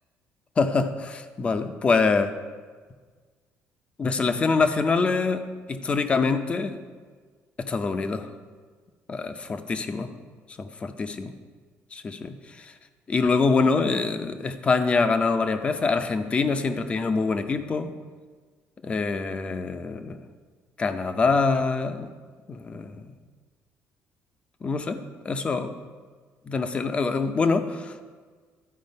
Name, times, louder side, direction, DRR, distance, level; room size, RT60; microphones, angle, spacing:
voice 1, 0.6-2.3 4.0-5.4 5.7-6.8 7.6-8.3 9.1-10.1 10.6-11.3 11.9-12.7 13.1-17.9 18.8-20.2 20.8-22.1 22.5-23.1 24.6-25.7 26.5-28.0, left 4 dB, 25° left, 9 dB, 0.6 m, -25 dB
12.0 x 4.8 x 5.3 m, 1.5 s
cardioid pair, 155°, 5 cm